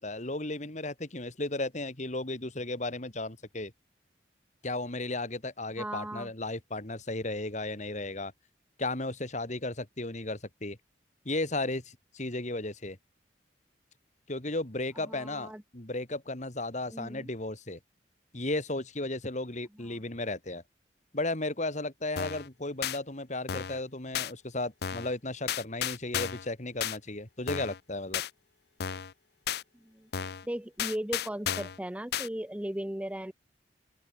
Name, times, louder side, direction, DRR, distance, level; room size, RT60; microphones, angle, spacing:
voice 1, 0.0-3.7 4.6-8.3 8.8-10.8 11.2-13.0 14.3-17.8 18.3-20.6 21.1-28.2, left 2 dB, 40° left, 2.5 m, -34 dB
voice 2, 5.8-6.3 15.0-15.6 16.9-17.3 29.8-30.1 30.4-33.3, right 1 dB, 5° right, 0.6 m, -37 dB
sound 1, 22.2-22.5 22.8-23.0 23.5-23.8 24.1-24.3 24.8-25.1 25.5-26.5 26.8-27.0 27.5-27.8 28.1-28.3 28.8-29.1 29.5-29.6 30.1-30.4 30.8-31.8 32.1-32.3, left 9 dB, 60° left, 0.5 m, -33 dB
open air
head